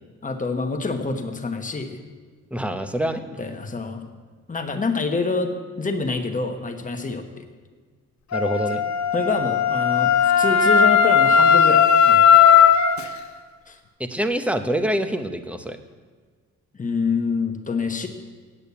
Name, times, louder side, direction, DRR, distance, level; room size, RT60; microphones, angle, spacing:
voice 1, 0.2-2.0 3.4-4.0 4.5-7.4 9.1-12.5 13.7-13.8 16.8-18.1, left 4 dB, 25° left, 5 dB, 1.2 m, -26 dB
voice 2, 2.5-3.2 8.3-8.8 14.0-15.8, equal, 5° right, 8 dB, 0.8 m, -25 dB
Wind instrument woodwind instrument, 8.3-13.0, left 7 dB, 70° left, 0.8 m, -16 dB
8.8 x 8.6 x 8.4 m, 1.5 s
cardioid pair, 110°, 29 cm